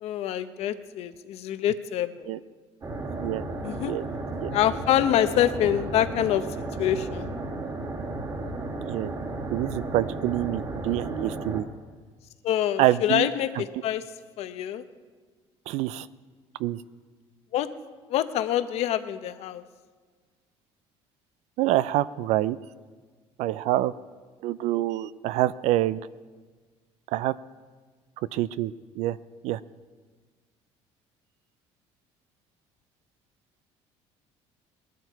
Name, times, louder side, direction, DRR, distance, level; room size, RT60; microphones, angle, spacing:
voice 1, 0.0-2.3 3.6-3.9 4.5-6.4 6.8-7.3 12.4-14.0 14.4-14.8 17.5-17.7 18.1-19.6, left 11 dB, 65° left, 11 dB, 0.8 m, -26 dB
sound 1, 2.8-11.6, right 2 dB, 35° right, 2.0 m, -34 dB
voice 2, 9.5-11.7 12.8-13.3 13.6-13.7 15.7-16.1 16.6-16.8 21.6-22.6 23.4-23.9 24.4-26.0 27.1-27.3 28.3-29.2 29.4-29.6, right 15 dB, 75° right, 17 dB, 0.4 m, -26 dB
19.5 x 12.5 x 4.6 m, 1.5 s
cardioid pair, 125°, 12 cm